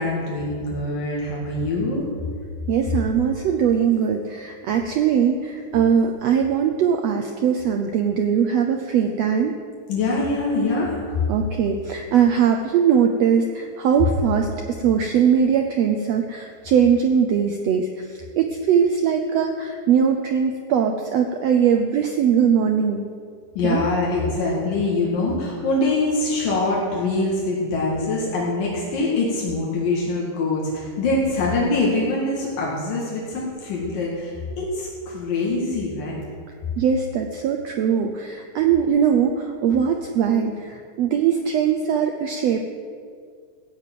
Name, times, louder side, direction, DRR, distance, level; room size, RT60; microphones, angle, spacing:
voice 1, 0.0-2.1 9.9-11.2 23.6-36.2, left 2 dB, 80° left, -4 dB, 3.7 m, -24 dB
voice 2, 2.7-9.6 11.3-14.5 14.8-23.1 23.6-23.8 36.8-42.7, right 7 dB, 80° right, 4 dB, 1.5 m, -21 dB
16.0 x 6.8 x 9.2 m, 2.1 s
omnidirectional pair, 3.9 m